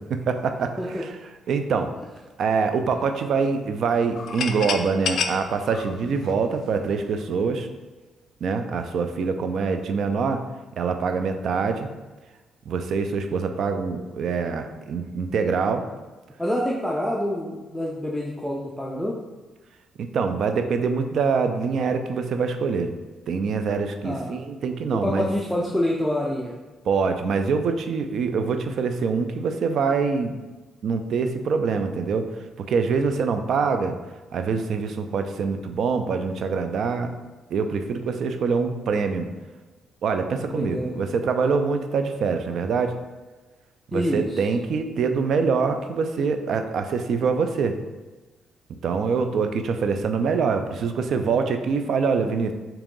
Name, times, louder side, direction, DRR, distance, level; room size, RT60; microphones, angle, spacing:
voice 1, 0.1-1.1 1.5-1.9 2.4-7.7 8.4-10.5 10.8-11.9 12.7-15.9 20.0-22.9 23.3-25.3 26.9-30.4 30.8-32.3 32.6-34.0 34.3-37.1 37.5-39.3 40.0-43.0 43.9-47.8 48.8-52.5, right 5 dB, 65° right, 7 dB, 0.4 m, -24 dB
sound 1, 4.2-6.9, left 6 dB, 65° left, 0.3 m, -29 dB
voice 2, 16.4-19.2 24.0-24.4 24.9-26.6 40.5-41.0 43.9-44.4, left 1 dB, 5° left, -4 dB, 0.5 m, -27 dB
3.5 x 2.9 x 3.7 m, 1.2 s
cardioid pair, 90°, 0 cm